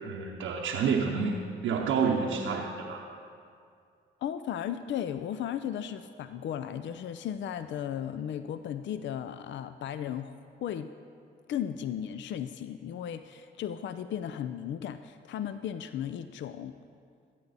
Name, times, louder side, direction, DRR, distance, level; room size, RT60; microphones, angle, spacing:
voice 1, 0.0-1.3 1.6-3.0, right 5 dB, 85° right, -1 dB, 0.8 m, -29 dB
voice 2, 4.2-10.4 10.6-10.9 11.5-16.8, left 9 dB, 65° left, 11 dB, 0.4 m, -35 dB
14.5 x 8.3 x 4.1 m, 2.3 s
supercardioid pair, 55°, 20 cm